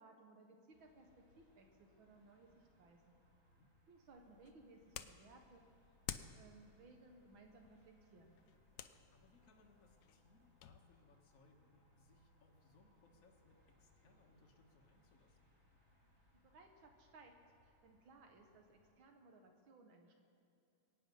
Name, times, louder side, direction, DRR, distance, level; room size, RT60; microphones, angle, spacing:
voice 1, 0.0-3.2 3.9-5.7 6.3-8.4 16.4-17.3 17.6-20.1, right 3 dB, 80° right, 3 dB, 2.0 m, -62 dB
sound 1, 0.7-18.9, left 1 dB, 35° right, 3.0 m, -73 dB
sound 2, 4.1-10.8, left 10 dB, 70° left, 1.0 m, -54 dB
voice 2, 9.1-15.5, left 3 dB, 45° left, 1 dB, 1.7 m, -70 dB
23.0 x 9.3 x 5.4 m, 2.7 s
omnidirectional pair, 2.2 m